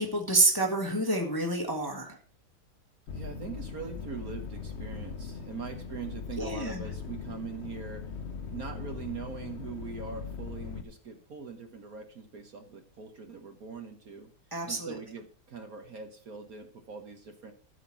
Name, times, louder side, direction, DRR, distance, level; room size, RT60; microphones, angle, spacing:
voice 1, 0.0-2.2 6.4-6.8 14.5-15.0, right 2 dB, 10° left, 2 dB, 1.4 m, -28 dB
sound 1, 3.1-10.8, left 5 dB, 45° left, 1.0 m, -40 dB
voice 2, 3.1-8.1 8.5-14.3 14.7-17.5, right 5 dB, 50° right, 5 dB, 1.5 m, -42 dB
13.0 x 5.9 x 6.0 m, 0.42 s
omnidirectional pair, 2.1 m